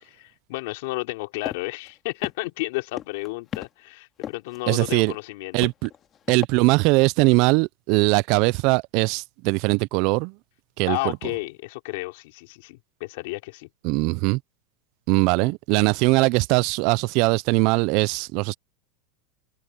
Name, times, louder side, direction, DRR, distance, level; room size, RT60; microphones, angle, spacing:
voice 1, 0.0-5.6 10.9-13.7, left 23 dB, 65° left, 3.1 m, -32 dB
sound 1, 1.4-1.6 1.9-2.0 2.2-2.6 3.0-3.7 4.2-4.6 4.9-5.1 5.6-6.5, left 10 dB, 30° left, 2.1 m, -33 dB
voice 2, 4.7-5.1 5.5-5.9 6.3-10.3 10.8-11.2 13.8-14.4 15.1-18.6, right 26 dB, 55° right, 0.3 m, -21 dB
supercardioid pair, 135°, 0 cm